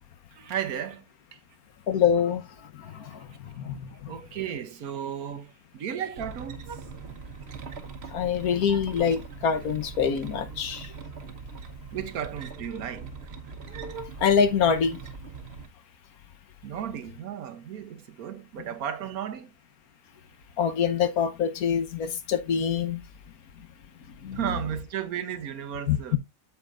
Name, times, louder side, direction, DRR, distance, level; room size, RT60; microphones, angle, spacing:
voice 1, 0.3-1.0 1.3-1.4 2.9-3.2 4.1-6.8 11.9-13.1 16.6-19.5 24.3-26.2, right 9 dB, 80° right, 1.4 m, -34 dB
voice 2, 1.9-4.1 8.1-10.9 14.2-15.0 20.6-23.0 24.2-24.4 25.9-26.2, left 7 dB, 85° left, 1.5 m, -25 dB
sound 1, 6.2-15.7, right 5 dB, 50° right, 1.2 m, -41 dB
8.1 x 7.2 x 2.5 m
omnidirectional pair, 1.5 m